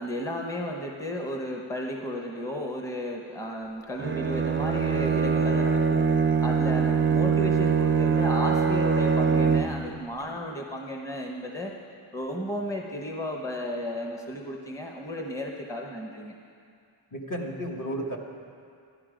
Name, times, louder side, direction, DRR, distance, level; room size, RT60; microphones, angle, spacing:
voice 1, 0.0-6.1 6.4-11.7 12.1-16.4, left 1 dB, 5° left, 1 dB, 0.9 m, -33 dB
Bowed string instrument, 4.0-10.0, right 5 dB, 25° right, 0.4 m, -23 dB
voice 2, 17.1-18.2, equal, 40° left, 0 dB, 1.3 m, -33 dB
11.5 x 11.0 x 5.1 m, 2.3 s
wide cardioid pair, 65°, 49 cm